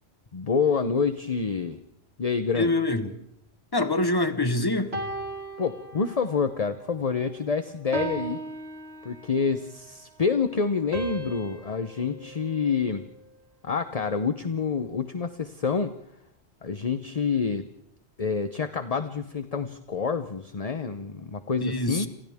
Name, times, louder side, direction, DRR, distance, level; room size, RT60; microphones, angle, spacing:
voice 1, 0.3-1.8 2.2-2.7 5.6-8.4 9.0-13.0 13.6-15.9 16.6-17.6 18.2-22.1, left 5 dB, 35° left, 10 dB, 0.9 m, -27 dB
voice 2, 2.5-3.1 3.7-4.9 21.6-22.1, left 2 dB, 20° left, 10 dB, 1.2 m, -25 dB
sound 1, 4.9-6.5 6.9-7.2 7.9-9.6 10.9-13.3, right 2 dB, 65° right, 3.0 m, -37 dB
28.5 x 27.5 x 3.6 m, 0.75 s
omnidirectional pair, 1.1 m